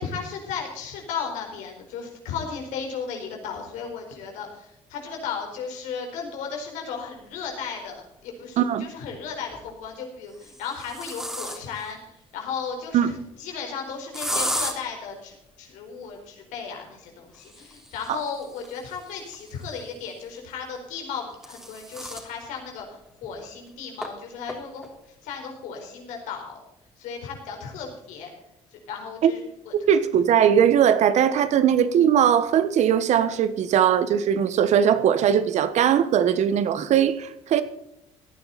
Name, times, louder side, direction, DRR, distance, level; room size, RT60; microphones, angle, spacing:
voice 1, 0.0-26.6 27.0-28.3 28.7-29.4 29.6-29.7, left 6 dB, 85° left, 4.6 m, -35 dB
sound 1, 7.8-7.9 9.3-9.7 10.3-11.9 14.1-14.7 17.3-20.0 21.0-22.3 22.8-22.9 23.2-23.3 24.0-24.1 24.5-24.9, equal, 5° right, 3.3 m, -34 dB
voice 2, 29.9-37.6, right 9 dB, 65° right, 1.4 m, -20 dB
17.0 x 11.0 x 4.2 m
supercardioid pair, 80°, 13 cm